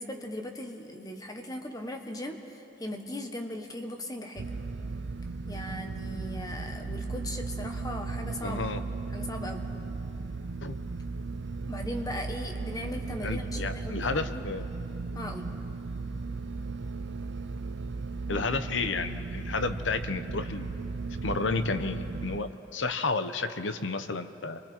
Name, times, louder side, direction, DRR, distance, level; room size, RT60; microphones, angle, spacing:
voice 1, 0.0-4.5 5.5-8.7 9.1-9.7 11.7-14.5 15.1-15.5, left 1 dB, 20° left, 4 dB, 1.4 m, -38 dB
sound 1, 4.4-22.4, right 3 dB, 65° right, 0.6 m, -36 dB
voice 2, 8.4-8.8 10.6-10.8 13.2-14.7 18.3-20.7 21.2-24.6, left 3 dB, 75° left, 10 dB, 0.9 m, -31 dB
30.0 x 23.5 x 4.5 m, 2.9 s
head